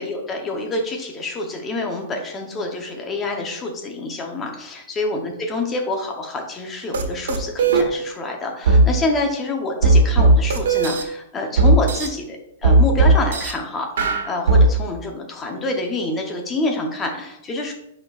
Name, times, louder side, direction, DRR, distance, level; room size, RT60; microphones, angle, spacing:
voice 1, 0.0-17.7, left 2 dB, 10° left, 2 dB, 0.8 m, -27 dB
sound 1, 6.9-7.0 7.3-7.8 8.7-8.8 9.8-11.0 11.6-12.1 12.6-13.5 14.0-14.6, right 3 dB, 80° right, 1.2 m, -15 dB
10.5 x 4.3 x 2.4 m, 0.81 s
hypercardioid pair, 175°, 0 cm